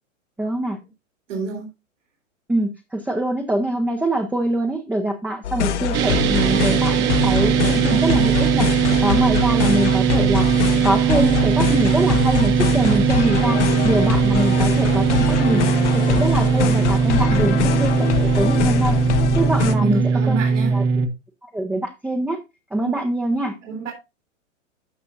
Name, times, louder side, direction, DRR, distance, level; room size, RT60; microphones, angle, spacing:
voice 1, 0.4-0.8 2.5-15.7 15.9-19.0 19.3-20.0 20.3-20.4 20.7-20.8 21.4-22.4 22.7-23.6, right 1 dB, 5° right, 3 dB, 0.7 m, -24 dB
voice 2, 1.3-1.7 6.0-6.3 17.3-17.5 19.6-20.7 22.8-23.0 23.6-23.9, right 5 dB, 70° right, 2 dB, 3.2 m, -28 dB
sound 1, 5.4-19.7, left 7 dB, 60° left, 1.0 m, -24 dB
sound 2, 5.9-21.1, right 7 dB, 30° right, 1.1 m, -19 dB
13.5 x 5.5 x 2.6 m, 0.25 s
hypercardioid pair, 115°, 39 cm